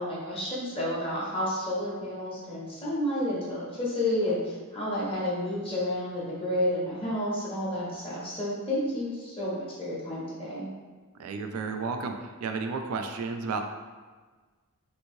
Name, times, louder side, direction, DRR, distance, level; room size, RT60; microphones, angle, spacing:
voice 1, 0.0-10.7, left 1 dB, 25° left, -7 dB, 1.0 m, -30 dB
voice 2, 11.2-13.6, right 4 dB, 70° right, 5 dB, 0.3 m, -32 dB
3.5 x 3.0 x 2.6 m, 1.4 s
head